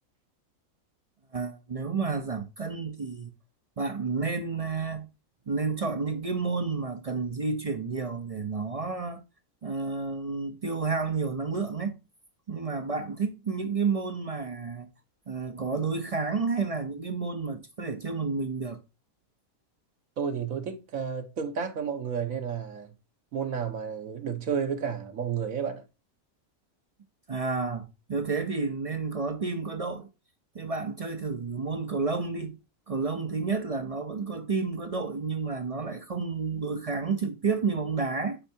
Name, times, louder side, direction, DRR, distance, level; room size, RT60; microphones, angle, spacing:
voice 1, 1.3-3.3 3.8-5.1 5.5-9.2 9.6-12.0 12.5-14.9 15.3-18.8 27.3-30.1 30.5-32.6 32.9-38.4, right 4 dB, 40° right, 0.5 m, -30 dB
voice 2, 20.2-22.9 23.3-25.8, right 7 dB, 70° right, 1.5 m, -31 dB
8.8 x 4.5 x 2.8 m
omnidirectional pair, 1.5 m